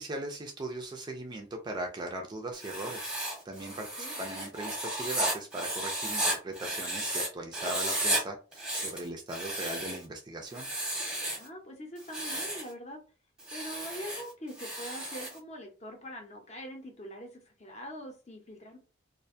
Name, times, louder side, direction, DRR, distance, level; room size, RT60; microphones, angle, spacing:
voice 1, 0.0-3.2 3.5-10.7, right 1 dB, 20° right, 3 dB, 0.3 m, -39 dB
Writing, 2.5-7.3 7.5-8.2 8.5-10.0 10.5-11.5 12.0-12.7 13.4-15.4, right 1 dB, 5° right, 0.7 m, -34 dB
voice 2, 11.3-13.0 13.5-18.8, equal, 35° left, 2 dB, 0.6 m, -43 dB
2.4 x 2.2 x 2.6 m, 0.35 s
head